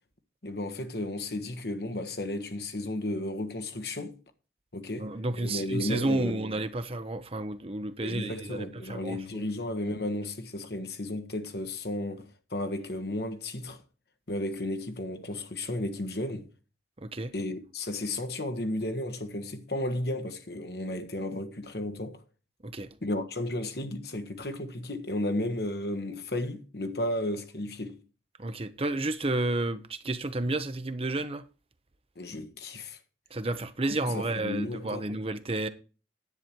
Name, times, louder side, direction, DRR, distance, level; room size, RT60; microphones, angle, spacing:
voice 1, 0.4-4.2 4.7-5.1 5.4-6.4 8.0-13.8 14.3-16.5 17.3-22.2 23.0-28.0 32.1-33.0 34.1-35.0, left 1 dB, 60° left, 1.4 m, -33 dB
voice 2, 5.0-9.5 17.0-17.3 22.6-22.9 28.4-31.4 33.3-35.7, right 2 dB, 30° right, 0.8 m, -31 dB
10.5 x 8.6 x 4.5 m
head